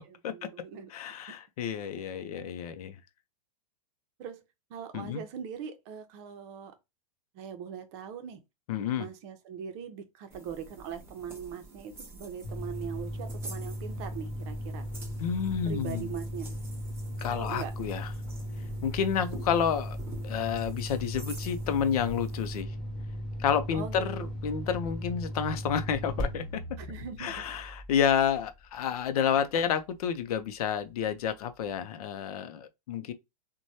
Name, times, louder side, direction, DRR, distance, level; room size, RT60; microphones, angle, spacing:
voice 1, 0.3-0.9 1.2-1.4 4.2-4.4 4.7-6.8 7.3-8.4 9.0-14.9 15.6-16.6 17.3-17.7 23.7-24.3 26.8-27.4, right 8 dB, 45° right, 0.7 m, -41 dB
voice 2, 0.9-3.0 4.9-5.2 8.7-9.1 15.2-16.1 17.2-18.1 18.8-20.0 20.2-22.7 23.4-26.6 27.2-33.1, left 8 dB, 75° left, 0.5 m, -30 dB
sound 1, 10.3-22.6, right 2 dB, 10° right, 0.9 m, -48 dB
sound 2, 12.4-28.8, equal, 20° left, 1.3 m, -37 dB
3.1 x 2.2 x 2.7 m
supercardioid pair, 145°, 19 cm